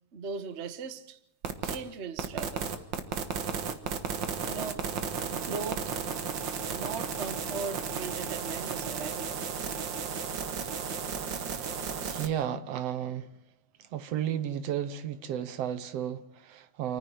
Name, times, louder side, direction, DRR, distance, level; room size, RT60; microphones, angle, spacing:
voice 1, 0.1-1.2 1.6-2.7 4.4-4.8 5.3-6.0 6.7-9.5, right 5 dB, 85° right, 0.6 m, -38 dB
sound 1, 1.4-1.8 2.2-12.3, right 6 dB, 50° right, 1.7 m, -34 dB
voice 2, 12.0-13.3 13.8-17.0, right 10 dB, 65° right, 2.0 m, -33 dB
28.5 x 9.9 x 9.5 m
omnidirectional pair, 3.3 m